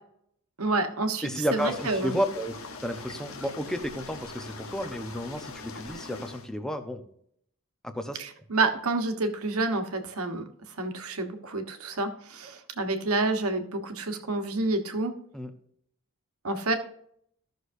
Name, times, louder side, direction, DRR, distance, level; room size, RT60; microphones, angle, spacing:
voice 1, 0.6-2.1 8.2-10.4 10.8-15.1 16.4-16.7, right 3 dB, 80° right, 6 dB, 1.3 m, -29 dB
voice 2, 1.2-2.6 2.8-7.1 7.8-8.2 15.3-15.5, equal, 5° left, 7 dB, 0.8 m, -32 dB
sound 1, 1.6-6.5, left 4 dB, 65° left, 1.1 m, -42 dB
15.0 x 6.4 x 2.7 m, 0.68 s
head